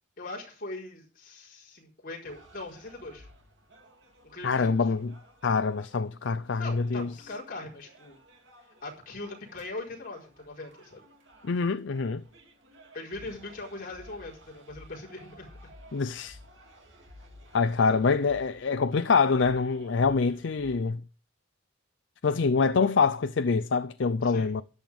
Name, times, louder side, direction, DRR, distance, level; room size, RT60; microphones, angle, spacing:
voice 1, 0.2-3.3 4.2-4.7 6.6-8.2 8.8-11.0 12.9-15.5 17.8-18.2 24.2-24.5, left 2 dB, 45° left, 4.6 m, -41 dB
sound 1, 2.2-20.8, equal, 60° right, 2.7 m, -55 dB
voice 2, 4.4-5.1 5.4-7.1 11.4-12.2 15.9-16.4 17.5-21.0 22.2-24.6, left 4 dB, 60° left, 0.5 m, -25 dB
13.5 x 10.5 x 3.5 m
head